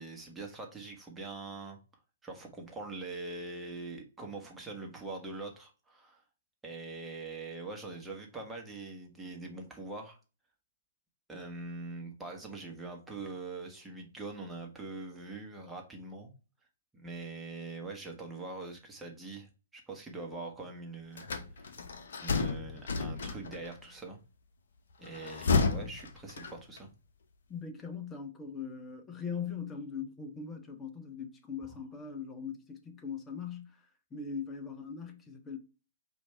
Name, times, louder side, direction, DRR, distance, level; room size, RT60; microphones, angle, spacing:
voice 1, 0.0-1.8 2.2-6.2 6.6-10.2 11.3-16.3 16.9-21.3 21.6-21.7 22.2-24.2 25.0-26.9, right 3 dB, 10° right, 1.2 m, -43 dB
sound 1, 21.2-23.7 25.1-26.9, left 4 dB, 65° left, 0.8 m, -32 dB
voice 2, 27.5-33.8 34.1-35.6, left 6 dB, 15° left, 0.9 m, -40 dB
5.0 x 2.7 x 3.3 m
figure-of-eight pair, 120°, 0 cm